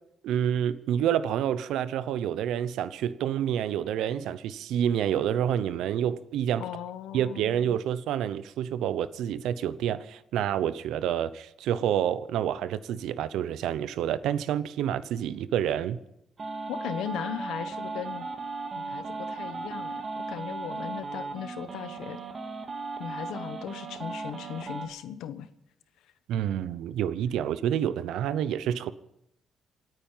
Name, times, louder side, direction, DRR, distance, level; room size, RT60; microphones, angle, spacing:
voice 1, 0.2-6.6 7.1-16.0 26.3-28.9, right 10 dB, 85° right, 0.8 m, -28 dB
voice 2, 6.6-7.8 16.7-18.3 18.7-22.2 23.0-25.5, left 10 dB, 85° left, 1.1 m, -38 dB
sound 1, 16.4-24.9, right 3 dB, 40° right, 2.1 m, -36 dB
27.5 x 9.3 x 5.7 m
cardioid pair, 90°, 0 cm